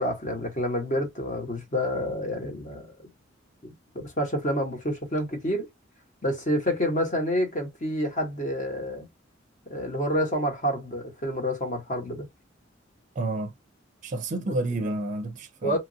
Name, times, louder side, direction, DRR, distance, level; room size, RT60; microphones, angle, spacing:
voice 1, 0.0-2.9 3.6-5.7 6.2-9.1 9.7-12.3 15.6-15.8, equal, 40° left, 1.1 m, -28 dB
voice 2, 13.2-13.5 14.0-15.8, right 2 dB, 40° right, 0.5 m, -30 dB
2.9 x 2.5 x 2.6 m
head